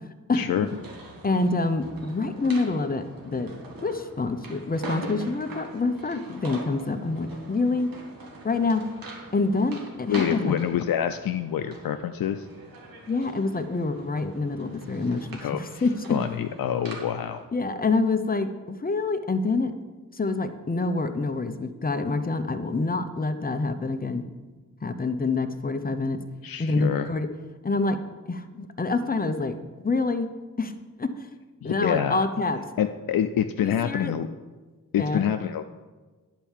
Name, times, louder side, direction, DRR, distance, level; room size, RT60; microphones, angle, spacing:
voice 1, 0.3-0.7 10.1-12.5 15.4-15.6 16.1-17.4 26.4-27.1 31.6-32.3 32.8-34.3 34.9-35.6, left 10 dB, 90° left, 8 dB, 0.5 m, -26 dB
sound 1, 0.6-17.4, right 2 dB, 85° right, 1.7 m, -43 dB
voice 2, 1.2-3.5 3.8-7.9 8.4-8.8 9.3-10.6 13.1-15.9 17.5-19.7 20.1-24.2 24.8-26.2 26.6-27.3 27.6-28.0 28.3-29.5 29.8-30.3 30.6-30.7 31.0-31.1 31.6-32.6 33.6-34.1 35.0-35.3, left 3 dB, 25° left, 8 dB, 0.7 m, -26 dB
10.5 x 4.6 x 7.2 m, 1.3 s
wide cardioid pair, 110°, 34 cm